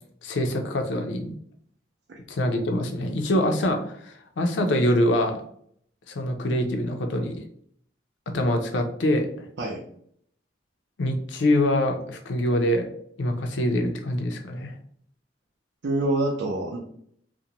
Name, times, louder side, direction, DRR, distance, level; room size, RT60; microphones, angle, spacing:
voice 1, 0.2-1.3 2.3-5.4 6.1-7.4 8.3-9.5 11.0-12.9 13.2-14.7, left 1 dB, 85° left, 4 dB, 0.5 m, -24 dB
voice 2, 15.8-16.8, right 1 dB, 75° right, 0 dB, 0.4 m, -26 dB
2.6 x 2.1 x 2.8 m, 0.64 s
head